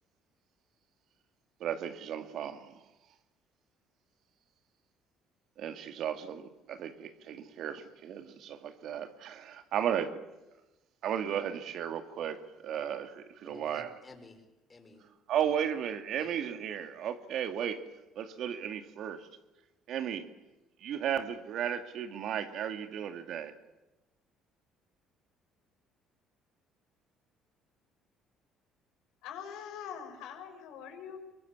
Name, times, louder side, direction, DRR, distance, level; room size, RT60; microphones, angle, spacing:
voice 1, 1.6-2.8 5.6-10.2 11.0-13.9 15.3-17.8 18.2-19.3 19.9-20.3 20.8-23.5, right 9 dB, 65° right, 2.3 m, -35 dB
voice 2, 13.4-15.1 15.4-15.5 16.2-16.3, left 3 dB, 25° left, 6.2 m, -53 dB
voice 3, 29.2-31.2, left 8 dB, 80° left, 6.0 m, -43 dB
23.0 x 22.0 x 8.8 m
supercardioid pair, 75°, 0 cm